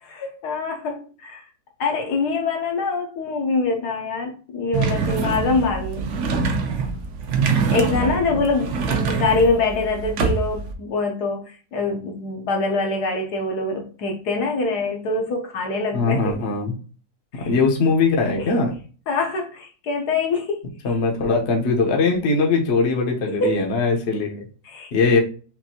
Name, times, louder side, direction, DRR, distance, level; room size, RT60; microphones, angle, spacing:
voice 1, 0.0-1.4 1.8-6.1 7.7-16.2 17.3-17.5 18.4-18.6 19.1-20.6 20.9-21.0 23.4-23.6 24.6-24.9, left 3 dB, 70° left, 1.3 m, -24 dB
sound 1, 4.7-10.7, right 4 dB, 65° right, 0.7 m, -24 dB
voice 2, 8.0-8.4 15.9-16.7 17.4-18.7 20.8-24.5 24.9-25.2, left 4 dB, 50° left, 0.9 m, -21 dB
5.9 x 2.6 x 2.7 m
omnidirectional pair, 1.9 m